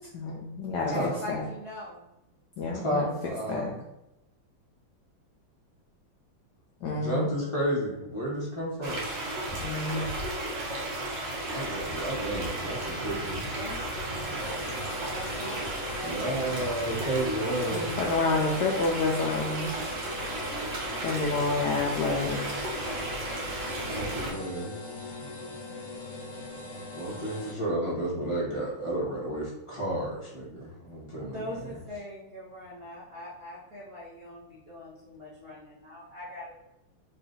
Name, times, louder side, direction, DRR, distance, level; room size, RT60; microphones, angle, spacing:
voice 1, 0.1-0.9 1.3-1.4 2.6-3.1 3.5-3.7 6.8-7.3 9.6-10.1 17.7-19.7 21.0-22.4, left 3 dB, 80° left, -2 dB, 0.9 m, -29 dB
voice 2, 0.9-2.1 13.4-14.6 15.1-15.6 15.9-16.9 31.2-36.5, left 1 dB, 80° right, -7 dB, 0.5 m, -42 dB
voice 3, 2.7-3.7 6.9-9.0 11.4-13.4 16.0-17.9 21.7-22.0 23.9-24.7 25.2-25.3 26.9-31.8, right 1 dB, 30° left, -7 dB, 0.5 m, -32 dB
sound 1, 8.8-24.3, right 1 dB, 60° right, 1.6 m, -34 dB
sound 2, 14.4-27.5, left 1 dB, 55° left, 1.3 m, -41 dB
3.9 x 2.4 x 3.8 m, 0.89 s
omnidirectional pair, 2.4 m